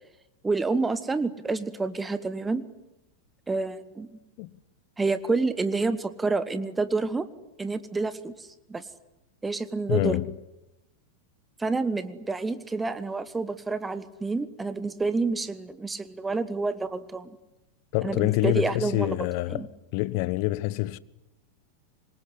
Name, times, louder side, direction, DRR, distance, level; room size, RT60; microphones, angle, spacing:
voice 1, 0.4-2.7 3.5-4.1 5.0-7.3 7.6-8.8 9.4-10.2 11.6-17.4 18.0-19.2 19.5-19.7, right 3 dB, 10° right, 1.3 m, -28 dB
voice 2, 9.9-10.3 17.9-19.7 19.9-21.0, left 19 dB, 45° left, 0.9 m, -26 dB
26.0 x 22.0 x 10.0 m
figure-of-eight pair, 90°, 0 cm